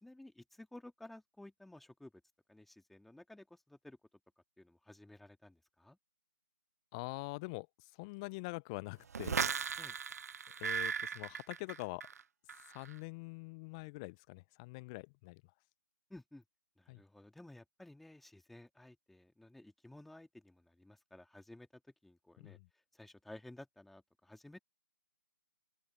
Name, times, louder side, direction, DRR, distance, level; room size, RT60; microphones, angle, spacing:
voice 1, 0.0-2.1 2.5-4.0 4.6-6.0 9.8-10.0 16.1-16.4 16.8-22.6 22.9-24.6, left 1 dB, ahead, 2.9 m, -55 dB
voice 2, 6.9-9.4 10.6-12.1 12.7-15.4 16.9-17.0 22.4-22.7, left 27 dB, 20° left, 0.7 m, -44 dB
sound 1, 9.1-12.2 12.5-12.9, right 6 dB, 50° right, 0.4 m, -37 dB
open air
figure-of-eight pair, 145°, 11 cm